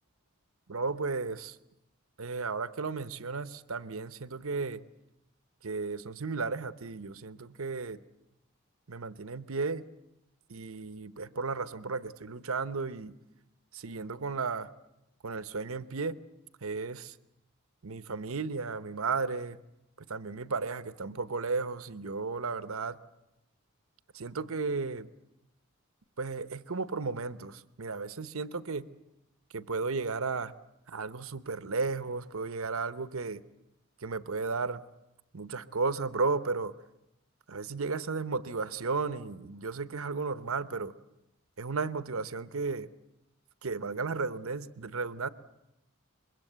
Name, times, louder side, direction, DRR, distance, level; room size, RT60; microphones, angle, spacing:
voice 1, 0.7-1.6 2.2-4.8 5.6-8.0 8.9-9.9 10.5-13.1 13.7-14.7 15.2-16.2 16.6-17.2 17.8-19.6 20.1-23.0 24.1-25.1 26.2-28.8 29.5-30.5 30.9-33.4 34.0-34.8 35.3-36.7 37.5-40.9 41.6-42.9 43.6-45.3, right 4 dB, 75° right, 13 dB, 0.9 m, -34 dB
24.5 x 22.5 x 8.0 m, 0.89 s
head